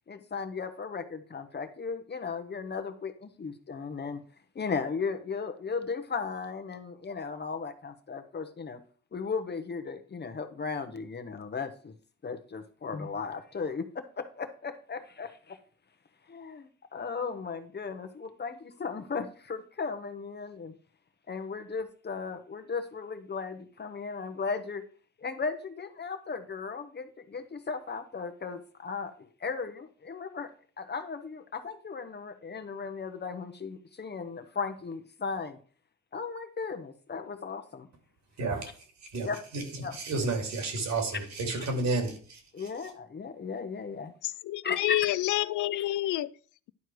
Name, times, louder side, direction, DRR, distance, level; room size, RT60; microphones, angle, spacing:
voice 1, 0.1-4.2 4.5-8.8 9.1-11.9 12.2-15.6 16.3-20.7 21.3-24.8 25.2-30.5 30.8-35.6 36.1-37.9 39.2-39.4 39.8-40.0 42.5-44.1 44.6-45.0 45.7-45.8, left 5 dB, 35° left, 1.1 m, -36 dB
voice 2, 38.4-38.7 39.1-42.4, right 3 dB, 65° right, 2.8 m, -31 dB
voice 3, 44.2-46.3, left 16 dB, 75° left, 0.5 m, -28 dB
11.0 x 4.5 x 4.7 m
cardioid pair, 90°, 30 cm